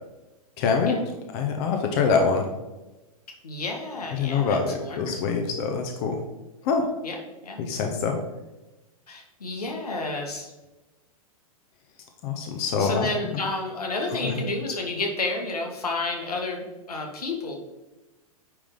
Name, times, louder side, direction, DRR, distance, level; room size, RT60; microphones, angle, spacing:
voice 1, 0.6-1.0 1.3-2.5 4.2-6.2 6.6-6.9 7.6-8.1 12.2-13.1 13.3-13.4 14.2-14.4, left 5 dB, 45° left, 4 dB, 1.0 m, -24 dB
voice 2, 3.4-5.4 7.0-7.6 9.1-10.5 12.8-17.6, left 2 dB, 85° left, 1 dB, 1.6 m, -31 dB
9.5 x 3.5 x 3.8 m, 1.0 s
hypercardioid pair, 115°, 19 cm